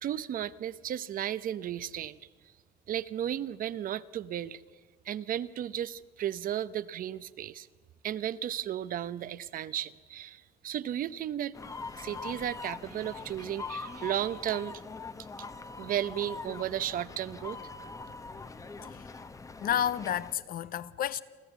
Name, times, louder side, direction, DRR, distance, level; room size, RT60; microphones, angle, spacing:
voice 1, 0.0-2.2 2.9-4.6 5.1-7.7 8.0-11.5 11.9-14.8 15.8-17.6, right 11 dB, 55° right, 0.8 m, -34 dB
sound 1, 11.5-20.3, left 3 dB, 20° left, 0.9 m, -43 dB
voice 2, 19.6-21.2, left 10 dB, 60° left, 0.9 m, -31 dB
28.5 x 13.5 x 8.1 m
cardioid pair, 110°, 17 cm